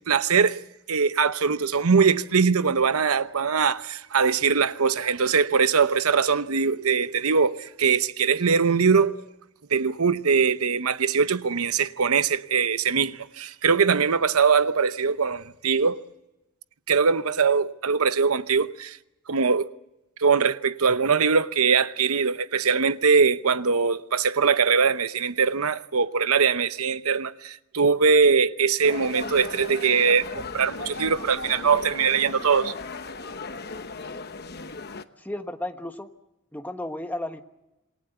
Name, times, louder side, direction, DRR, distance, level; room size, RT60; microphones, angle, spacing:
voice 1, 0.1-0.6 0.9-9.2 9.7-16.0 16.9-19.0 19.3-19.7 20.2-32.7, right 5 dB, 85° right, 0.9 m, -22 dB
sound 1, 28.8-35.0, left 3 dB, 45° left, 1.1 m, -36 dB
voice 2, 35.2-36.1 36.5-37.4, left 1 dB, 10° left, 1.2 m, -33 dB
27.5 x 19.5 x 8.0 m
head